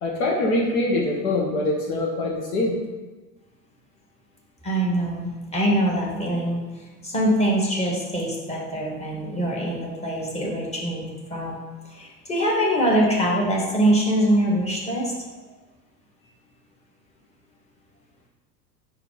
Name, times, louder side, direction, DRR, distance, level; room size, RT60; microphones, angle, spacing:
voice 1, 0.0-2.8, left 2 dB, 60° left, -1 dB, 1.2 m, -23 dB
voice 2, 4.6-6.6 7.0-11.6 11.9-15.1, right 1 dB, 15° left, -4 dB, 1.8 m, -23 dB
4.9 x 4.2 x 5.0 m, 1.3 s
figure-of-eight pair, 80°, 50 cm